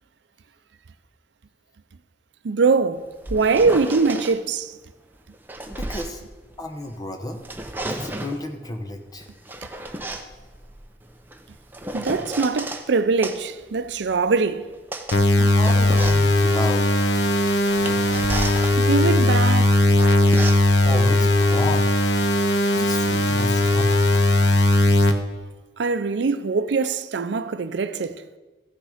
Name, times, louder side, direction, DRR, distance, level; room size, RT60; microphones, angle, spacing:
voice 1, 2.4-3.1 3.3-4.7 11.9-14.6 18.8-19.8 25.8-28.2, right 4 dB, 80° right, 0.5 m, -22 dB
sound 1, 3.0-4.4 5.2-7.0 7.3-8.4 9.2-12.9 13.2-22.3, right 1 dB, 10° right, 0.7 m, -34 dB
voice 2, 5.6-6.2 6.6-7.4 7.9-9.3 15.4-17.0 20.8-21.9 22.7-24.6, left 1 dB, 20° left, 0.9 m, -32 dB
sound 2, 15.1-25.1, left 1 dB, 70° left, 0.9 m, -18 dB
15.0 x 6.4 x 5.0 m
head